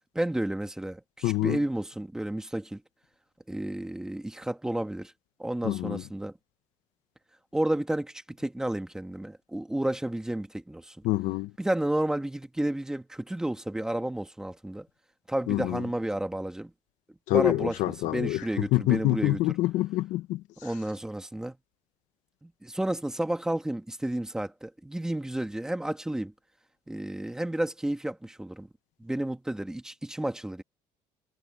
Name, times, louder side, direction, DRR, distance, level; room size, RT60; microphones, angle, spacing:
voice 1, 0.1-2.8 3.5-5.1 5.4-6.3 7.5-11.0 11.6-14.9 15.3-16.7 17.3-17.7 18.0-19.4 20.6-21.6 22.4-26.3 26.9-28.7 29.0-30.6, right 1 dB, 5° right, 1.4 m, -31 dB
voice 2, 1.2-1.6 5.6-6.0 11.0-11.5 15.5-15.9 17.3-20.7, left 17 dB, 80° left, 1.0 m, -27 dB
cardioid pair, 175°, 13 cm